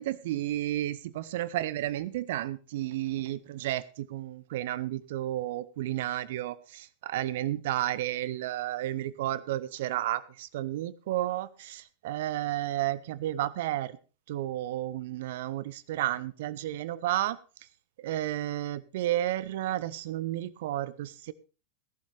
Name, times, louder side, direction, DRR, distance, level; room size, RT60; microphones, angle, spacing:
voice 1, 0.0-13.9 14.3-17.4 18.0-21.3, right 14 dB, 55° right, 19 dB, 0.8 m, -32 dB
17.0 x 11.5 x 3.4 m, 0.34 s
figure-of-eight pair, 90°, 0 cm